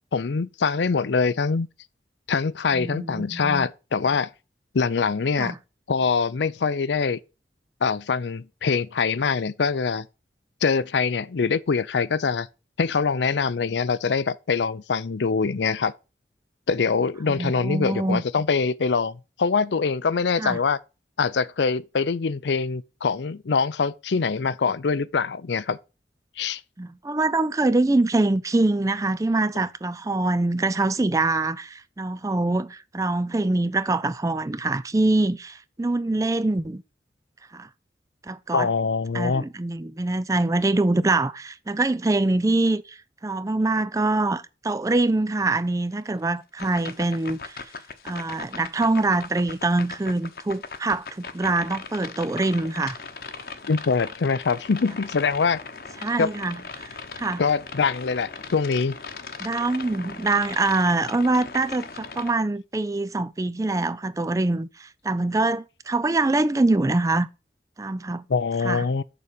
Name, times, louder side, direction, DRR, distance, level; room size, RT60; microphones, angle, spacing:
voice 1, 0.1-1.7 2.3-4.3 4.7-5.5 5.9-7.2 7.8-10.1 10.6-12.5 12.8-15.9 16.7-20.8 21.2-25.8 26.4-26.6 38.5-39.4 53.7-55.6 56.2-56.3 57.4-59.0 68.3-69.0, left 5 dB, 85° left, 0.5 m, -24 dB
voice 2, 2.7-3.7 5.4-5.6 17.3-18.2 20.4-20.6 26.8-36.8 37.5-37.7 38.3-38.7 39.1-43.0 43.2-47.6 48.0-53.0 56.0-57.4 59.4-67.3 67.8-68.2 68.6-68.9, right 2 dB, 20° right, 0.4 m, -24 dB
sound 1, 46.6-62.3, left 4 dB, 55° left, 1.0 m, -39 dB
6.8 x 6.3 x 5.2 m
head